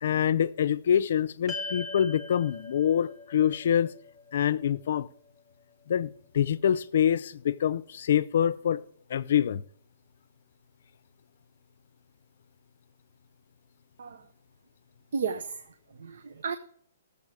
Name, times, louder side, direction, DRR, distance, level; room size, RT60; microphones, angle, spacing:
voice 1, 0.0-3.9 4.3-5.1 5.9-8.8 9.1-9.6, left 9 dB, 55° left, 0.5 m, -25 dB
sound 1, 1.5-5.9, left 3 dB, 10° right, 1.3 m, -42 dB
voice 2, 15.1-16.6, right 6 dB, 70° right, 0.7 m, -34 dB
17.5 x 7.1 x 4.9 m
hypercardioid pair, 170°, 0 cm